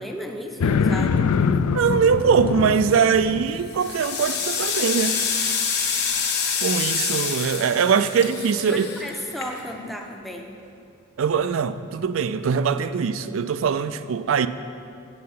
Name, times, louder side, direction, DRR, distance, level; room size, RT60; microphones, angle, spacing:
voice 1, 0.0-1.6 8.7-10.6, equal, ahead, 2 dB, 0.6 m, -34 dB
sound 1, 0.6-3.7, left 5 dB, 85° left, 0.4 m, -23 dB
voice 2, 1.7-5.2 6.6-8.9 11.2-14.5, right 6 dB, 65° right, 13 dB, 0.3 m, -22 dB
sound 2, 2.7-3.1 3.6-9.9, left 6 dB, 50° left, 1.1 m, -27 dB
7.9 x 7.5 x 5.5 m, 2.5 s
head